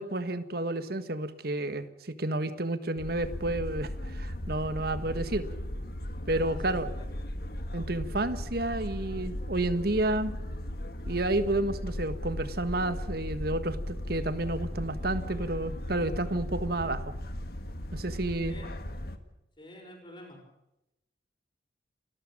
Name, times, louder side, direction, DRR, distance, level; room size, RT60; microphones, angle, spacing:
voice 1, 0.0-5.4 6.3-6.9 7.7-10.4 11.0-17.0 17.9-18.6, right 2 dB, 55° right, 11 dB, 1.6 m, -30 dB
sound 1, 3.0-19.2, left 1 dB, 55° left, 1.9 m, -37 dB
voice 2, 4.9-5.3 6.4-7.1 18.4-18.7 19.6-20.4, equal, 25° left, 2 dB, 6.2 m, -48 dB
29.5 x 14.0 x 7.5 m, 0.90 s
head